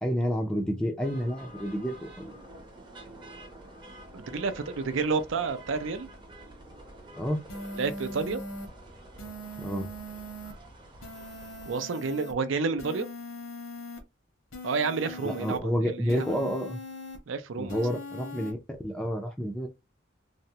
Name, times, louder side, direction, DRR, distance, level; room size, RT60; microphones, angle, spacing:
voice 1, 0.0-2.4 7.2-7.4 9.6-9.9 15.2-16.8 17.6-18.6 18.8-19.7, equal, 5° left, 0.4 m, -29 dB
sound 1, 1.0-11.7, right 1 dB, 25° right, 0.7 m, -48 dB
voice 2, 4.1-6.1 7.8-8.4 11.6-13.1 14.6-16.4 17.3-17.8, right 4 dB, 70° right, 0.5 m, -30 dB
sound 2, 7.5-8.7 9.2-10.5 11.0-12.3 12.8-14.0 14.5-15.6 16.1-17.2 17.7-18.5, left 1 dB, 90° left, 0.9 m, -41 dB
3.4 x 2.0 x 2.7 m
head